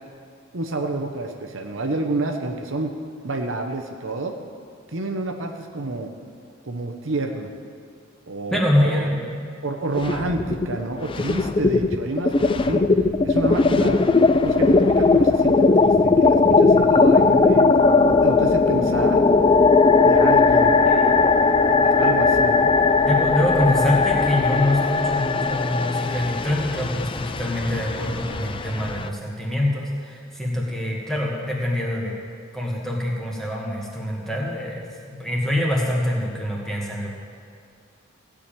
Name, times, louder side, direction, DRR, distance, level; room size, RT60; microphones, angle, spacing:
voice 1, 0.5-2.9 3.2-4.3 4.9-6.1 6.6-7.5 8.3-9.1 9.6-12.8 13.2-14.0 14.4-19.2 20.0-20.7 21.6-22.7, right 2 dB, 65° right, 4 dB, 0.9 m, -29 dB
voice 2, 8.5-9.2 20.8-21.0 23.0-32.1 32.5-37.1, left 1 dB, ahead, -3 dB, 1.8 m, -25 dB
sound 1, 10.0-10.8 11.0-29.1, left 4 dB, 25° left, 0.4 m, -18 dB
15.0 x 5.1 x 8.9 m, 2.4 s
head